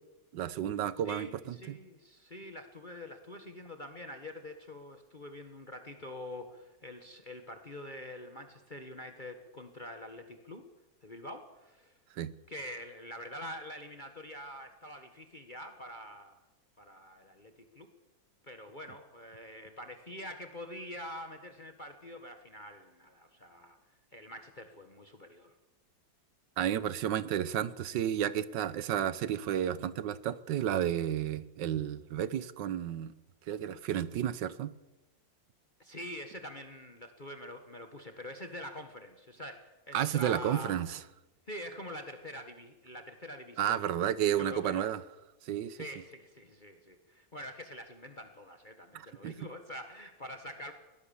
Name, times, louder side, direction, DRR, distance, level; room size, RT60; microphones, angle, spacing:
voice 1, 0.3-1.3 1.7-1.8 12.2-12.3 26.6-33.1 33.5-34.7 39.9-41.0 43.6-45.0 45.4-45.8 48.9-49.3, right 10 dB, 80° right, 16 dB, 1.5 m, -32 dB
voice 2, 1.0-10.6 11.0-12.0 12.5-16.4 16.8-17.9 18.4-23.8 24.1-25.5 35.8-40.7 41.5-44.0 44.4-44.9 45.8-50.7, left 1 dB, 30° left, 6 dB, 1.5 m, -45 dB
21.5 x 18.0 x 7.1 m, 1.0 s
omnidirectional pair, 1.9 m